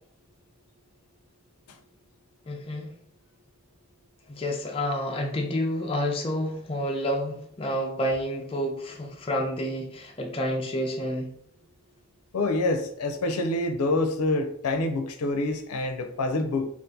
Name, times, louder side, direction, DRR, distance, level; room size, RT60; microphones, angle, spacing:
voice 1, 2.5-3.0 4.3-11.3, equal, 25° left, 0.4 m, -29 dB
voice 2, 12.3-16.7, left 2 dB, 85° left, 0.5 m, -26 dB
2.7 x 2.4 x 3.7 m
head